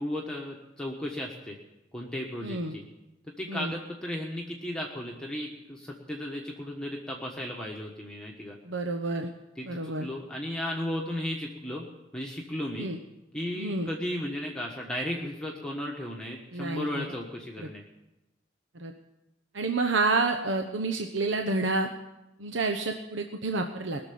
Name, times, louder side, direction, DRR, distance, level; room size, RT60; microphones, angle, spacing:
voice 1, 0.0-1.6 1.9-2.8 3.2-8.6 9.5-11.9 12.1-12.9 13.3-17.8, left 1 dB, 5° left, -2 dB, 1.3 m, -35 dB
voice 2, 2.4-2.7 3.5-3.7 8.7-9.3 9.6-10.1 12.8-13.0 13.6-13.9 16.5-17.1 17.6-17.7 18.7-18.9 19.5-21.9 22.4-24.0, right 3 dB, 80° right, 4 dB, 1.0 m, -29 dB
20.5 x 6.8 x 8.5 m, 0.96 s
head